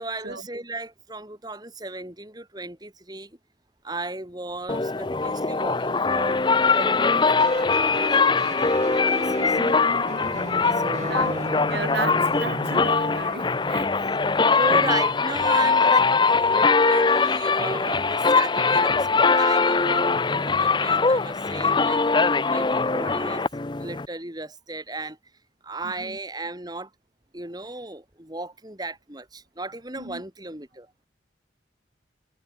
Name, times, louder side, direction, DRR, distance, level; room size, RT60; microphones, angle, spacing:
voice 1, 0.0-3.4 3.8-6.4 6.7-8.7 9.1-9.6 10.7-11.6 14.6-22.0 22.5-23.4 23.8-25.2 25.6-26.9 27.3-30.9, right 2 dB, 20° right, 2.8 m, -35 dB
sound 1, 4.7-24.1, left 4 dB, 25° left, 0.6 m, -22 dB
sound 2, 7.4-13.4, right 1 dB, 40° right, 2.1 m, -36 dB
voice 2, 9.7-10.2 11.0-11.4 11.7-14.1 26.0-26.2 30.0-30.2, right 3 dB, 60° right, 1.9 m, -34 dB
head